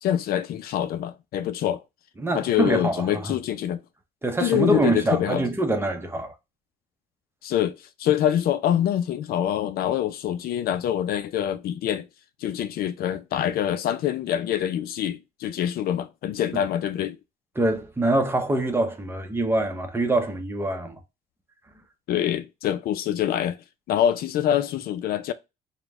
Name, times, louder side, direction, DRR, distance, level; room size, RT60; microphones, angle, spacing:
voice 1, 0.0-1.8 2.3-3.8 4.4-5.4 7.4-12.1 12.4-17.2 22.1-23.6 23.9-25.3, left 10 dB, 65° left, 0.4 m, -25 dB
voice 2, 2.2-3.3 4.2-6.3 16.5-16.6 17.6-21.0, right 2 dB, 15° right, 0.7 m, -24 dB
5.0 x 2.2 x 3.5 m
cardioid pair, 110°, 17 cm